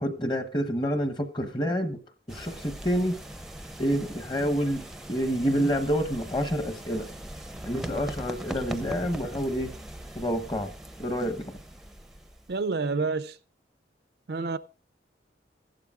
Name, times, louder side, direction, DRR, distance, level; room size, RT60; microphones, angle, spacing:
voice 1, 0.0-2.0 2.3-3.2 3.8-4.8 5.1-7.0 7.6-9.7 10.1-10.7 11.0-11.6, equal, 25° left, 1.0 m, -28 dB
sound 1, 2.3-12.6, right 1 dB, 5° right, 0.6 m, -40 dB
voice 2, 12.5-13.4 14.3-14.6, right 4 dB, 60° right, 0.5 m, -28 dB
15.0 x 11.5 x 2.4 m
head